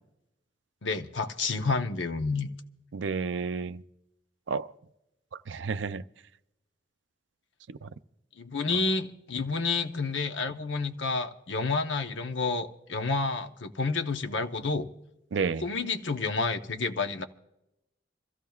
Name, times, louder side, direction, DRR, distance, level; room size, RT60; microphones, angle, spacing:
voice 1, 0.8-2.5 8.4-14.9 15.5-17.2, left 4 dB, 85° left, 0.8 m, -30 dB
voice 2, 2.9-3.8 4.5-4.7 5.5-6.0 7.7-7.9 15.3-15.7, right 5 dB, 75° right, 0.4 m, -31 dB
27.0 x 15.0 x 2.3 m
head